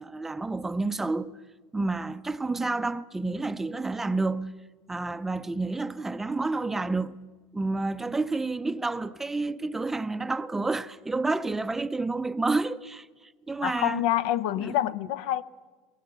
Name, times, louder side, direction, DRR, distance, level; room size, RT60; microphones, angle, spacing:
voice 1, 0.0-1.3 1.7-4.5 4.9-7.2 7.5-13.1 13.5-14.0 14.6-14.7, right 3 dB, 10° right, 0.5 m, -29 dB
voice 2, 13.6-15.4, left 12 dB, 70° left, 0.7 m, -26 dB
24.0 x 16.0 x 6.8 m
supercardioid pair, 125°, 3 cm